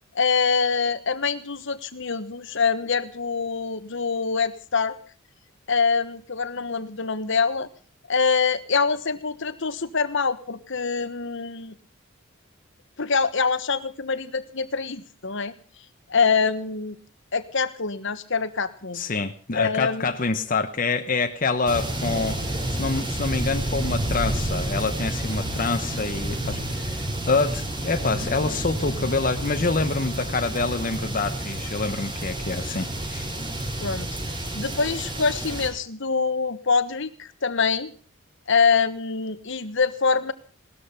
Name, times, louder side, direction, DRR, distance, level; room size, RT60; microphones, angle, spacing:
voice 1, 0.1-5.0 5.7-7.7 8.1-11.7 13.0-15.5 16.1-17.0 17.3-19.0 19.5-20.1 33.8-34.2 34.5-37.9 38.5-40.3, left 5 dB, 60° left, 13 dB, 1.3 m, -24 dB
voice 2, 18.9-33.3, left 3 dB, 40° left, 7 dB, 1.0 m, -26 dB
sound 1, 21.7-35.7, right 1 dB, 25° right, 5.5 m, -30 dB
18.5 x 13.5 x 5.7 m, 0.39 s
head